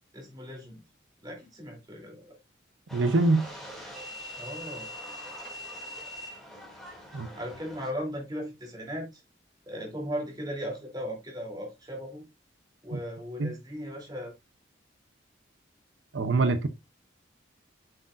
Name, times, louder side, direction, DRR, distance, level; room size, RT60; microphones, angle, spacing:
voice 1, 0.1-0.8 1.2-2.3 4.4-4.9 7.3-9.2 9.7-12.2 12.8-14.3, equal, 20° right, 3.1 m, -37 dB
sound 1, 2.9-7.9, equal, ahead, 2.5 m, -42 dB
voice 2, 2.9-3.5 7.1-7.3 12.9-13.0 13.4-13.5 16.1-16.7, right 3 dB, 85° right, 0.7 m, -24 dB
7.7 x 6.3 x 2.5 m
head